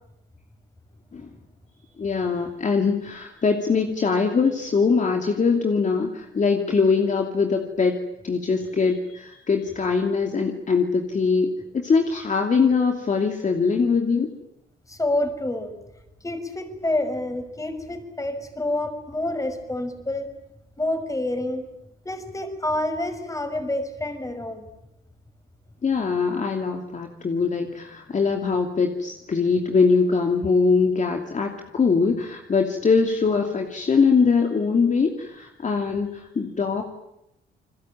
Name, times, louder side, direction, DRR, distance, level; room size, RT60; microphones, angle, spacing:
voice 1, 2.0-8.0 8.2-14.3 25.8-36.8, left 5 dB, 40° left, 3 dB, 2.8 m, -22 dB
voice 2, 14.9-15.8 16.2-20.3 20.8-21.7 22.0-24.7, left 1 dB, 15° left, 8 dB, 5.8 m, -28 dB
29.5 x 21.5 x 9.2 m, 0.84 s
cardioid pair, 90°, 20 cm